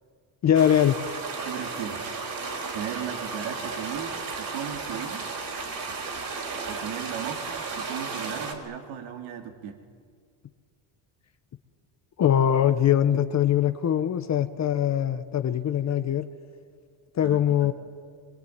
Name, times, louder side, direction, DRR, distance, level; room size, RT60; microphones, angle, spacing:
voice 1, 0.4-1.0 12.2-16.3 17.1-17.7, left 10 dB, 35° left, 9 dB, 0.9 m, -22 dB
sound 1, 0.5-8.5, right 4 dB, 45° right, 4.8 m, -34 dB
voice 2, 1.4-5.3 5.9-6.1 6.6-9.8 17.2-17.7, right 9 dB, 75° right, 4 dB, 3.2 m, -37 dB
25.0 x 23.0 x 9.5 m, 2.1 s
cardioid pair, 150°, 47 cm